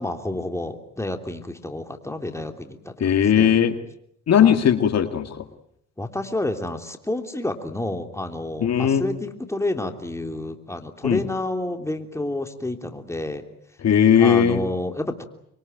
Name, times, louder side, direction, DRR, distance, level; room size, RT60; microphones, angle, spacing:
voice 1, 0.0-3.6 4.4-4.6 6.0-13.4 14.2-15.2, left 2 dB, 10° left, 5 dB, 3.2 m, -29 dB
voice 2, 3.0-3.8 4.3-5.4 8.6-9.0 11.0-11.2 13.8-14.6, left 8 dB, 60° left, 8 dB, 2.2 m, -18 dB
26.0 x 23.0 x 9.2 m, 0.71 s
cardioid pair, 90°, 30 cm